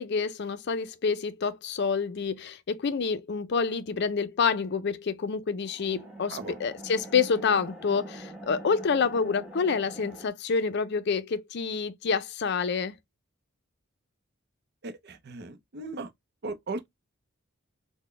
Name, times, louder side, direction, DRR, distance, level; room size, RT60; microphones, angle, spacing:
voice 1, 0.0-12.9, left 5 dB, 55° left, 0.5 m, -28 dB
sound 1, 5.6-10.3, right 1 dB, 5° right, 1.0 m, -44 dB
voice 2, 14.8-16.1 16.4-16.9, right 3 dB, 50° right, 0.6 m, -37 dB
4.0 x 2.1 x 3.1 m
head